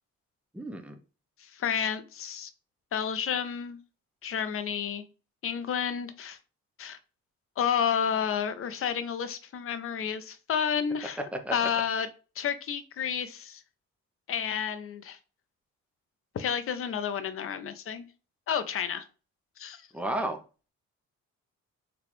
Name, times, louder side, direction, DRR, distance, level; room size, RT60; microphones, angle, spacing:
voice 1, 0.5-1.0 11.5-11.7 19.9-20.4, right 1 dB, 5° right, 0.6 m, -32 dB
voice 2, 1.4-2.5 2.9-3.8 4.2-5.0 5.4-6.4 6.8-7.0 7.6-11.2 11.5-12.1 12.4-13.6 14.3-15.2 16.3-18.1 18.5-19.1 19.6-19.8, left 7 dB, 45° left, 0.5 m, -30 dB
3.9 x 2.3 x 3.0 m
cardioid pair, 90°, 30 cm